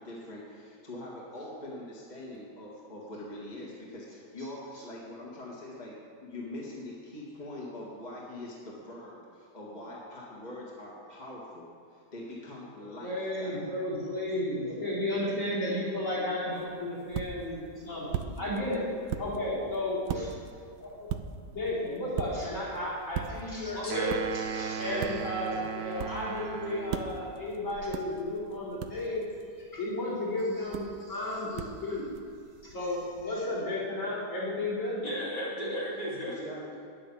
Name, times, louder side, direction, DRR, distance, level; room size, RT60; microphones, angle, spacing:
voice 1, 0.0-13.1 13.4-13.8 36.2-36.8, left 1 dB, 25° left, -4 dB, 2.0 m, -43 dB
voice 2, 12.8-18.9 19.2-20.4 20.8-21.2 21.5-24.2 24.5-29.3 29.5-32.1 32.6-35.0, left 1 dB, 45° left, -7 dB, 4.4 m, -33 dB
sound 1, 16.5-33.3, right 8 dB, 80° right, 1.2 m, -41 dB
voice 3, 23.8-24.2 24.9-25.1 35.0-36.4, equal, 80° left, -8 dB, 4.3 m, -33 dB
sound 2, 23.9-27.3, right 8 dB, 55° right, 0.8 m, -37 dB
10.5 x 9.6 x 7.1 m, 2.3 s
omnidirectional pair, 1.8 m